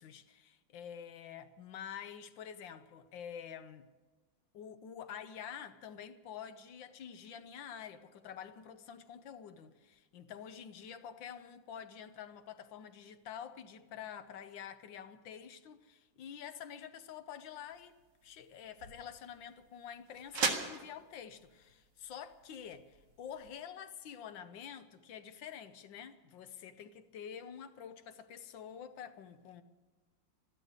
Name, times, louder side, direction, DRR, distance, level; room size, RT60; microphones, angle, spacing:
voice 1, 0.0-3.9 4.5-17.9 18.2-29.6, left 8 dB, 80° left, 1.5 m, -48 dB
sound 1, 17.7-23.6, right 4 dB, 70° right, 2.2 m, -41 dB
13.5 x 12.0 x 8.7 m
omnidirectional pair, 2.0 m